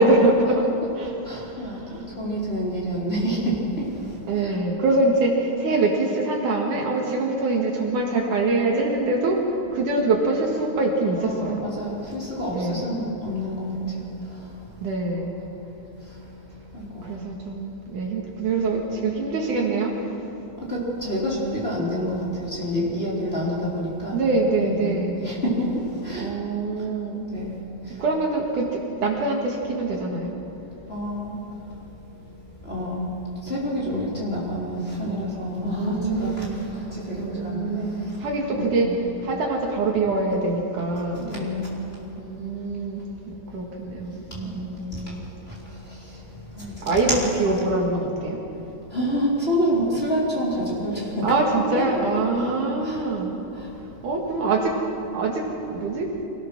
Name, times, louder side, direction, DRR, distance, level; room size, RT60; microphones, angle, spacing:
voice 1, 0.0-0.6 1.0-1.1 1.4-1.6 1.8-2.1 4.3-11.6 12.5-12.9 14.8-15.3 17.0-19.9 24.1-25.2 26.2-27.2 28.0-30.4 35.8-36.6 37.1-38.9 39.2-41.3 42.2-45.2 46.8-48.4 51.2-53.4 54.0-54.7 55.1-56.1, right 2 dB, 65° right, 0 dB, 3.3 m, -24 dB
voice 2, 1.2-4.6 11.2-14.8 15.4-15.6 15.9-16.2 16.7-17.1 20.6-24.3 24.6-26.3 27.3-28.1 30.9-31.8 32.6-38.9 39.2-39.3 41.1-42.0 44.3-45.2 45.5-47.2 48.9-52.1 52.8-53.0 53.5-53.7, equal, 15° left, -6 dB, 3.8 m, -29 dB
25.0 x 17.5 x 6.2 m, 2.9 s
omnidirectional pair, 4.1 m